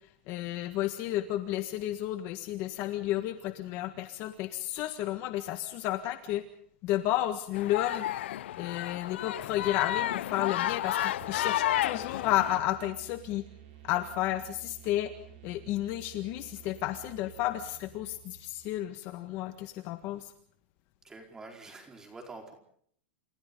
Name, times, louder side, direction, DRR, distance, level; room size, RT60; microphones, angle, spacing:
voice 1, 0.3-6.4 6.8-8.1 8.6-13.4 13.8-15.1 15.4-20.3, left 14 dB, 35° left, 8 dB, 1.6 m, -32 dB
sound 1, 7.5-12.6, left 13 dB, 70° left, 0.9 m, -31 dB
sound 2, 11.2-18.9, right 11 dB, 50° right, 5.9 m, -52 dB
voice 2, 21.0-22.5, right 3 dB, 10° right, 3 dB, 4.6 m, -46 dB
29.0 x 28.5 x 3.9 m, 0.63 s
supercardioid pair, 170°, 7 cm